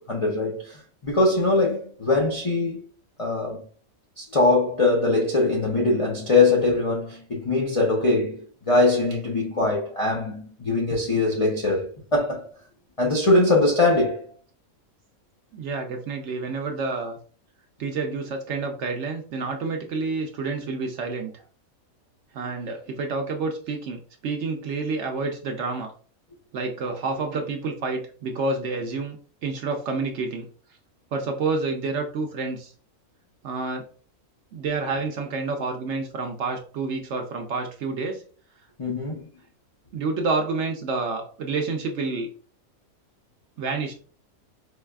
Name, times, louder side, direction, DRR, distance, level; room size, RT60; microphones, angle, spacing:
voice 1, 0.1-2.8 3.2-3.6 4.2-12.5 13.0-14.3 38.8-39.3, left 2 dB, 50° left, 0.4 m, -22 dB
voice 2, 15.5-17.2 17.8-21.3 22.3-25.9 26.5-30.5 31.1-32.7 33.4-33.9 34.5-38.2 38.9-39.0 39.9-42.3 43.6-43.9, right 3 dB, 65° right, 0.7 m, -29 dB
4.7 x 2.3 x 2.2 m
omnidirectional pair, 1.5 m